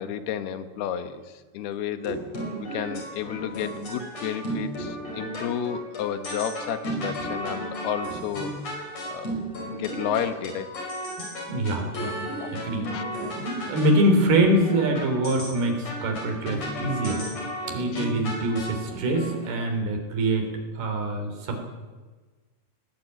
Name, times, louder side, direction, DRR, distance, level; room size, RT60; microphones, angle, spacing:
voice 1, 0.0-2.3 2.6-8.5 9.0-9.4 9.7-10.7 12.3-12.5 12.9-13.1 17.9-18.1, left 9 dB, 70° left, 10 dB, 3.1 m, -32 dB
sound 1, 2.0-19.5, equal, 40° left, 6.1 m, -34 dB
voice 2, 11.2-12.1 12.5-12.9 13.2-17.2 17.7-20.5 20.8-21.6, right 1 dB, 65° right, 4 dB, 5.5 m, -24 dB
19.5 x 19.0 x 9.3 m, 1.3 s
omnidirectional pair, 4.9 m